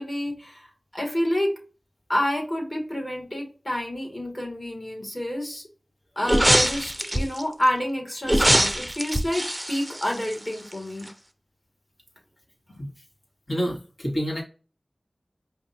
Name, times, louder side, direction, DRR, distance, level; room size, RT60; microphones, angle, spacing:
voice 1, 0.0-1.5 2.1-5.7 6.2-11.1, left 1 dB, 35° left, 1 dB, 2.0 m, -28 dB
sound 1, 6.2-7.4 8.2-10.7 11.0-11.1, right 1 dB, 10° right, 0.6 m, -22 dB
voice 2, 13.5-14.4, equal, 65° left, -2 dB, 1.9 m, -28 dB
5.1 x 2.6 x 2.7 m, 0.36 s
wide cardioid pair, 45°, 0 cm